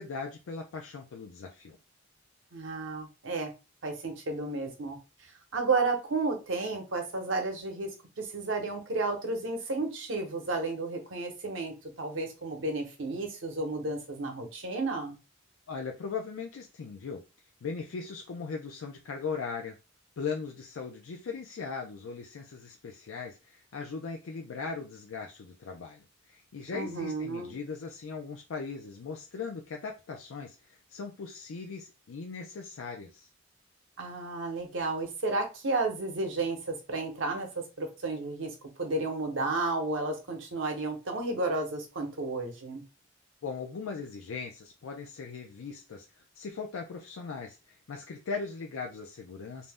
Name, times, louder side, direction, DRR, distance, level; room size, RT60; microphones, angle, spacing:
voice 1, 0.0-1.8 15.7-17.2 17.6-19.8 20.2-33.3 43.4-49.7, left 5 dB, 85° left, 2 dB, 0.4 m, -39 dB
voice 2, 2.5-3.5 3.8-5.0 5.5-7.9 8.2-15.2 26.7-27.6 34.0-42.8, right 3 dB, 65° right, 4 dB, 0.8 m, -32 dB
2.6 x 2.0 x 3.4 m, 0.28 s
head